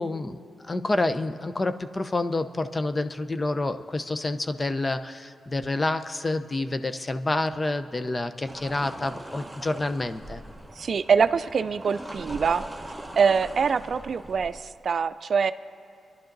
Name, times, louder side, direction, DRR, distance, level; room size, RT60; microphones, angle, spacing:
voice 1, 0.0-10.4, left 2 dB, 30° left, 10 dB, 0.7 m, -28 dB
sound 1, 8.4-14.6, right 1 dB, 5° right, 1.1 m, -41 dB
voice 2, 10.8-12.6 13.2-15.5, right 6 dB, 60° right, 13 dB, 0.4 m, -24 dB
25.0 x 11.0 x 4.0 m, 2.3 s
cardioid pair, 65°, 0 cm